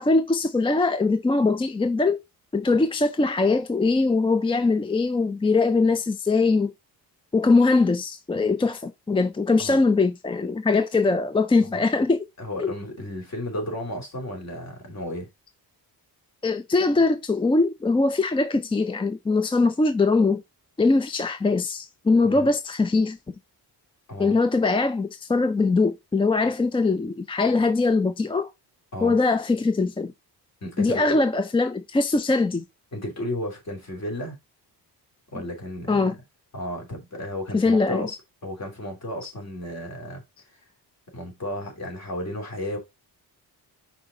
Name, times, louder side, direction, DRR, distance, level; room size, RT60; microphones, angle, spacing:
voice 1, 0.0-2.2 2.5-6.7 7.3-12.2 12.6-12.7 16.4-20.4 20.8-23.2 24.2-28.5 29.0-30.1 30.8-32.6 35.9-36.1 37.5-38.1, left 3 dB, 15° left, 0.3 m, -22 dB
voice 2, 12.4-15.3 22.2-22.5 24.1-24.4 28.9-29.2 30.6-31.2 32.9-34.4 35.3-36.1 36.5-38.2 38.4-40.2 41.1-42.8, left 1 dB, 40° left, 3.0 m, -33 dB
5.6 x 4.8 x 3.7 m
wide cardioid pair, 150°, 40 cm